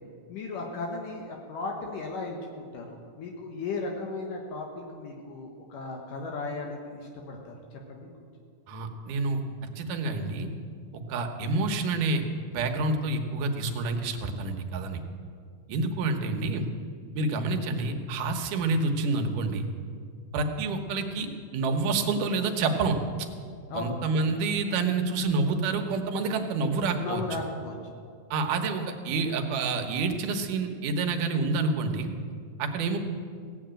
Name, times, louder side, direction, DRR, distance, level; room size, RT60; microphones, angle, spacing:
voice 1, 0.3-7.6 7.9-8.1 23.7-24.0 27.0-27.8, left 3 dB, 70° left, 1 dB, 2.7 m, -36 dB
voice 2, 8.7-9.4 9.8-10.5 10.9-12.2 12.5-15.0 15.7-16.7 17.2-19.7 20.3-23.0 23.7-27.2 28.3-32.1 32.6-33.0, right 3 dB, 70° right, 4 dB, 2.5 m, -28 dB
17.0 x 7.9 x 8.9 m, 2.1 s
omnidirectional pair, 4.2 m